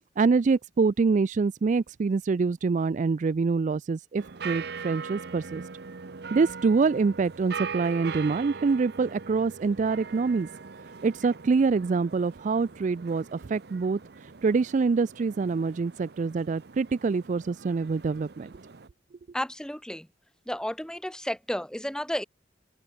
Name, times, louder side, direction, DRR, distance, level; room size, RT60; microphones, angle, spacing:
voice 1, 0.2-5.6 6.3-10.5 11.0-14.0 14.4-18.5, right 4 dB, 40° right, 0.3 m, -25 dB
sound 1, 4.2-18.9, right 5 dB, 60° right, 0.8 m, -41 dB
voice 2, 19.3-20.1 20.5-22.2, equal, 5° left, 1.9 m, -32 dB
open air
head